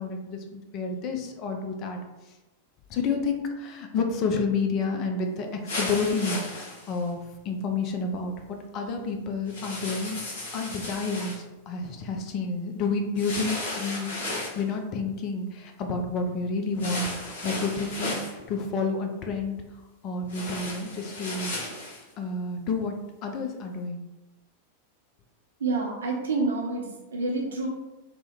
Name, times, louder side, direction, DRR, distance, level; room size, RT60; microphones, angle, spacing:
voice 1, 0.0-2.0 2.9-7.2 7.4-10.2 10.5-14.1 14.6-19.6 20.0-21.5 22.2-23.0 23.2-24.0, left 4 dB, 35° left, 3 dB, 0.4 m, -30 dB
sound 1, 5.7-7.0 9.5-11.4 13.1-14.6 16.8-18.3 20.3-22.0, left 2 dB, 65° left, 0.9 m, -34 dB
voice 2, 25.6-26.8 27.1-27.7, right 3 dB, 70° right, -1 dB, 0.7 m, -27 dB
2.9 x 2.1 x 3.6 m, 1.0 s
figure-of-eight pair, 90°, 0 cm